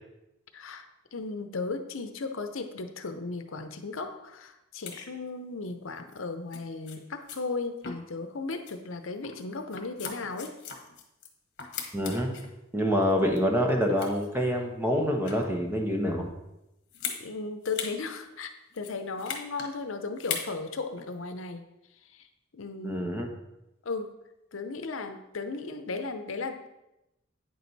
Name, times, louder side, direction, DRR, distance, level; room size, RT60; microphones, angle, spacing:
voice 1, 0.5-10.5 17.1-21.6 22.0-22.3 22.5-23.1 23.8-24.2 24.5-26.7, left 3 dB, 75° left, 7 dB, 0.7 m, -36 dB
sound 1, 4.9-5.1 6.1-6.2 6.5-6.6 6.9-7.0 7.3-7.4 7.8-8.2 8.5-8.7 9.2-11.3 11.6-12.5 13.0-13.6 13.9-14.4 15.0-15.6 16.9-17.2 17.6-18.0 18.2-18.3 18.7-19.7 20.2-20.5 21.0-21.1, left 7 dB, 55° left, 1.3 m, -38 dB
voice 2, 11.9-12.3 12.7-16.3 22.8-23.3, equal, 10° right, 2 dB, 1.0 m, -26 dB
9.1 x 6.3 x 4.1 m, 0.91 s
head